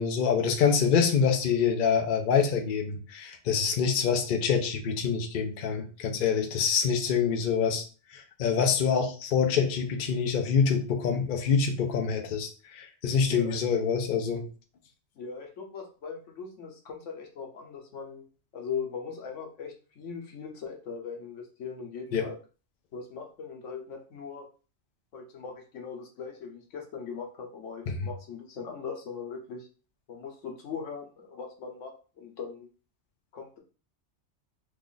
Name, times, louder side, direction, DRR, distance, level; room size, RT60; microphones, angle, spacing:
voice 1, 0.0-7.8 8.1-14.4 22.1-22.3 27.9-28.1, left 6 dB, 55° left, 5 dB, 0.7 m, -26 dB
voice 2, 13.2-13.6 15.2-18.3 18.5-22.3 22.9-24.5 25.1-29.7 30.1-32.7 33.3-33.6, left 6 dB, 90° left, 2 dB, 1.2 m, -40 dB
3.0 x 2.4 x 3.8 m, 0.36 s
omnidirectional pair, 1.2 m